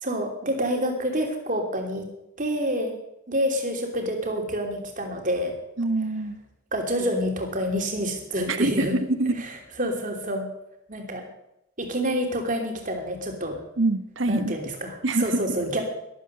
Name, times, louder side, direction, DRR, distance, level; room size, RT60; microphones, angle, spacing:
voice 1, 0.0-2.1 2.4-2.9 3.3-5.5 6.7-9.0 9.4-9.5 9.8-10.5 10.9-11.3 11.8-13.6 14.3-15.8, equal, 40° right, 3 dB, 3.0 m, -27 dB
voice 2, 5.8-6.4 8.5-9.5 13.8-14.6 15.0-15.6, right 2 dB, 70° right, 11 dB, 1.1 m, -25 dB
13.0 x 12.0 x 6.8 m, 0.83 s
head